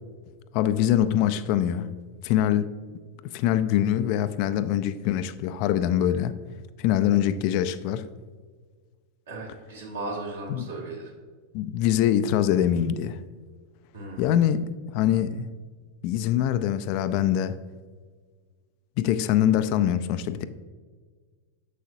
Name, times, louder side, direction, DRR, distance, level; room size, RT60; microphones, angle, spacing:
voice 1, 0.5-1.9 2.2-2.7 3.2-6.3 6.8-8.1 10.5-10.7 11.5-13.2 14.2-15.5 16.0-17.6 19.0-20.4, left 11 dB, 45° left, 0.3 m, -24 dB
voice 2, 9.3-11.1 13.9-14.3, right 2 dB, 65° right, 1.9 m, -36 dB
7.3 x 6.3 x 2.6 m
figure-of-eight pair, 90°, 0 cm